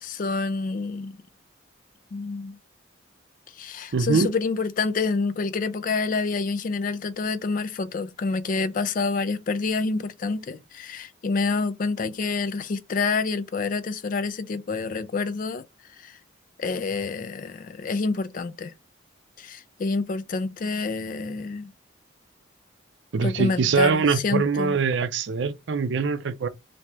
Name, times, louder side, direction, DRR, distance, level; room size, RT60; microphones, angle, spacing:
voice 1, 0.0-1.2 2.1-2.6 3.5-15.6 16.0-16.2 16.6-18.7 19.4-21.7 23.2-24.8, left 4 dB, 40° left, 0.3 m, -28 dB
voice 2, 3.9-4.3 23.1-26.5, right 5 dB, 65° right, 0.4 m, -23 dB
3.0 x 2.8 x 3.3 m
head